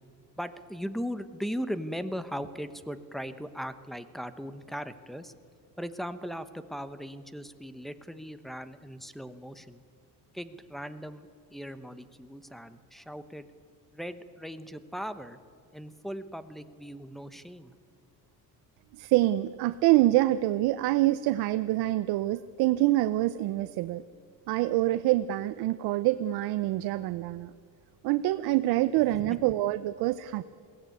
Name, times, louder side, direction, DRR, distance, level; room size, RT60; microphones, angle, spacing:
voice 1, 0.4-5.3 5.8-9.8 10.3-13.5 13.9-15.4 15.7-17.7 29.1-29.4, equal, ahead, 12 dB, 1.0 m, -38 dB
voice 2, 18.9-24.0 24.5-27.5 28.0-30.4, right 16 dB, 85° right, 13 dB, 0.7 m, -26 dB
22.0 x 16.5 x 9.2 m, 2.3 s
cardioid pair, 125°, 36 cm